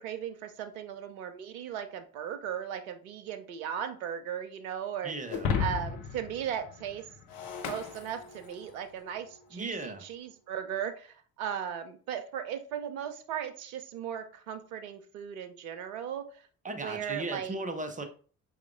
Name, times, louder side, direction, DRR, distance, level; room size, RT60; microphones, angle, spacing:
voice 1, 0.0-5.1 5.6-7.0 7.7-16.2 16.8-17.6, right 9 dB, 75° right, 7 dB, 0.6 m, -37 dB
voice 2, 5.0-5.6 9.5-10.0 16.6-18.0, right 2 dB, 20° right, 6 dB, 0.7 m, -36 dB
Shatter, 5.3-8.8, left 6 dB, 55° left, 0.7 m, -34 dB
4.7 x 3.5 x 2.4 m, 0.41 s
figure-of-eight pair, 40°, 43 cm